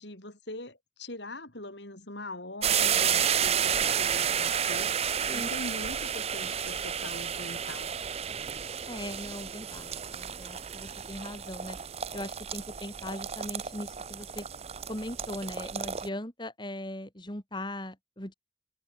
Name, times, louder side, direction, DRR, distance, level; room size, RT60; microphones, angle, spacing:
voice 1, 0.0-7.9, left 1 dB, 65° left, 7.6 m, -42 dB
sound 1, 2.6-16.1, right 8 dB, 35° right, 0.6 m, -31 dB
voice 2, 8.9-11.8 12.1-14.5 14.9-18.3, left 1 dB, 25° left, 4.1 m, -39 dB
head